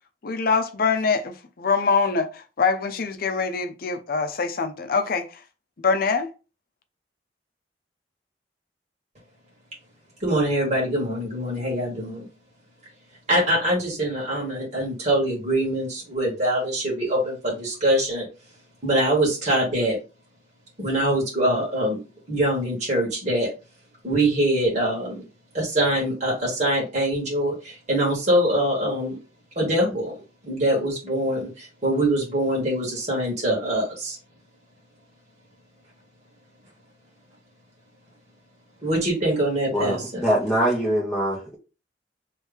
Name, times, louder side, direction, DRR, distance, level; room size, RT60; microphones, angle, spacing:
voice 1, 0.2-5.3 5.8-6.3, left 4 dB, 55° left, 0.6 m, -24 dB
voice 2, 10.2-12.3 13.3-18.3 18.8-20.0 20.8-22.0 22.3-23.5 24.0-25.2 25.5-29.2 29.6-34.2 38.8-40.2, right 1 dB, 40° right, 1.9 m, -24 dB
voice 3, 39.7-41.6, equal, 5° right, 1.0 m, -23 dB
3.3 x 3.1 x 3.5 m
head